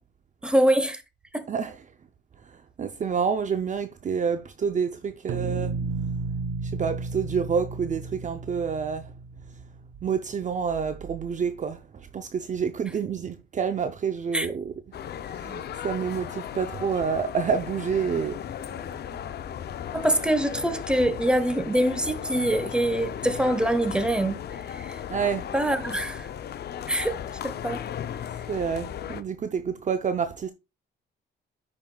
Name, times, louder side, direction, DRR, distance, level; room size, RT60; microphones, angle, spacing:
voice 1, 0.4-1.0 1.3-1.5 14.3-14.5 19.9-25.0 25.5-26.3 26.9-27.2 27.4-27.8, right 1 dB, 5° right, 1.1 m, -24 dB
voice 2, 2.4-5.8 6.6-9.1 10.0-14.7 15.3-18.4 18.8-18.9 25.1-25.5 28.5-30.5, right 6 dB, 40° right, 0.6 m, -28 dB
sound 1, 5.3-10.2, right 4 dB, 75° right, 0.7 m, -33 dB
sound 2, 14.9-29.2, left 9 dB, 55° left, 0.6 m, -36 dB
10.5 x 5.3 x 2.3 m
cardioid pair, 90°, 20 cm